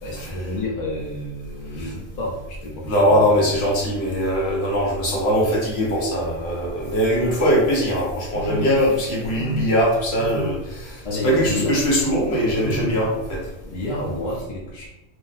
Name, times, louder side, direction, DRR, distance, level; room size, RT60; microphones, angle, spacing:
voice 1, 0.0-3.1 3.4-3.5 11.0-11.8 13.6-14.9, left 1 dB, 45° left, -4 dB, 0.8 m, -29 dB
voice 2, 2.9-11.0 11.2-13.4, equal, 65° left, -3 dB, 1.1 m, -21 dB
sound 1, 8.3-8.8 9.3-9.8 10.2-10.7 11.2-11.6 12.5-13.0, left 1 dB, 50° right, 0.5 m, -29 dB
2.6 x 2.1 x 3.9 m, 0.91 s
omnidirectional pair, 1.2 m